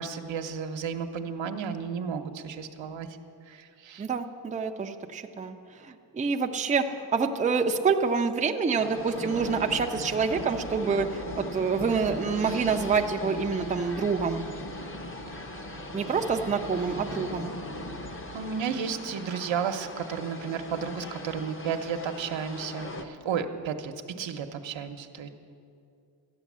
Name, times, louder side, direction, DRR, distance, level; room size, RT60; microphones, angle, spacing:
voice 1, 0.0-3.1 3.5-4.1 15.3-15.8 18.3-25.3, right 6 dB, 80° right, 6 dB, 1.0 m, -33 dB
voice 2, 4.0-5.6 6.2-6.8 7.1-11.1 11.4-14.4 15.9-17.5, right 5 dB, 15° right, 4 dB, 0.5 m, -27 dB
sound 1, 8.8-23.0, left 1 dB, 30° left, 0.8 m, -39 dB
13.5 x 9.2 x 7.3 m, 2.5 s
wide cardioid pair, 160°, 45 cm